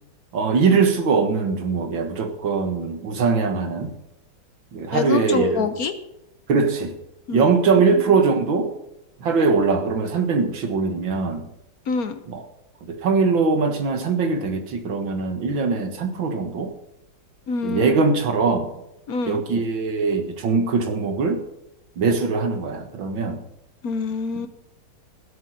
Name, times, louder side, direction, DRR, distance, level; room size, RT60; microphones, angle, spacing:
voice 1, 0.3-3.9 4.7-5.7 6.5-6.9 7.3-8.7 9.2-11.5 12.3-12.4 12.8-16.7 17.6-18.7 19.3-21.4 22.0-23.4, right 4 dB, 85° right, 6 dB, 2.4 m, -21 dB
voice 2, 4.9-5.9 7.3-7.5 7.9-8.0 11.9-12.2 17.5-17.9 19.1-19.4 23.8-24.5, left 4 dB, 55° left, 9 dB, 1.3 m, -25 dB
16.0 x 8.2 x 6.5 m, 0.85 s
omnidirectional pair, 2.1 m